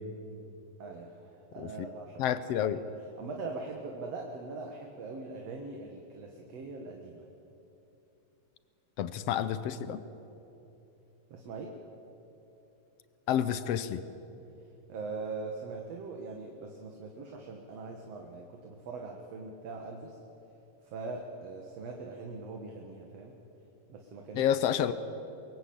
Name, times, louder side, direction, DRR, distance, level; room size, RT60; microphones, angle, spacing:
voice 1, 0.8-2.7 3.2-7.2 11.3-11.7 14.9-20.2 20.8-23.3 23.9-24.5, right 3 dB, 60° right, 1 dB, 2.6 m, -41 dB
voice 2, 2.2-2.8 9.0-10.0 13.3-14.0 24.4-24.9, left 10 dB, 65° left, 13 dB, 1.7 m, -29 dB
23.0 x 22.5 x 8.6 m, 3.0 s
omnidirectional pair, 3.4 m